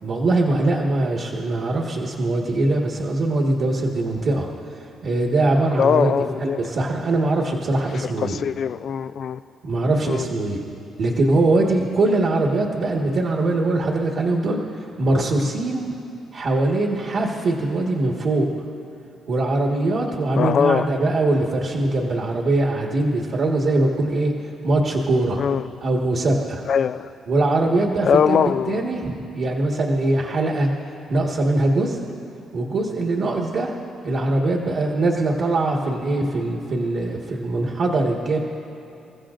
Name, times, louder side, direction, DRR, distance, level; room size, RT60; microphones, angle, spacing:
voice 1, 0.0-6.1 6.4-8.4 9.6-10.6 11.0-15.9 16.3-18.7 19.3-24.3 24.6-25.4 25.8-26.6 27.3-30.7 31.1-32.0 32.5-33.7 34.0-38.4, right 2 dB, 60° right, -2 dB, 1.6 m, -22 dB
voice 2, 5.8-6.6 8.2-9.4 10.1-10.2 20.4-20.9 25.4-25.6 26.7-27.1 28.1-28.8, left 7 dB, 60° left, 13 dB, 0.3 m, -21 dB
28.0 x 14.5 x 2.5 m, 2.7 s
cardioid pair, 90°, 0 cm